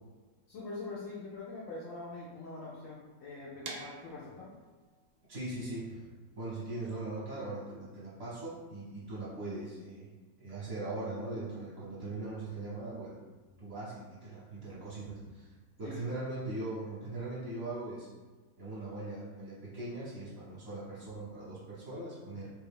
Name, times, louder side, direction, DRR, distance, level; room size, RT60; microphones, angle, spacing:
voice 1, 0.5-4.5 15.8-16.2, left 3 dB, 75° left, -6 dB, 0.7 m, -43 dB
sound 1, 3.7-9.4, right 3 dB, 75° right, 1.1 m, -50 dB
voice 2, 5.3-6.1 6.4-10.1 10.4-13.2 13.6-15.5 15.8-18.1 18.6-22.5, right 2 dB, 55° right, -9 dB, 1.2 m, -40 dB
3.4 x 2.3 x 3.4 m, 1.3 s
omnidirectional pair, 1.9 m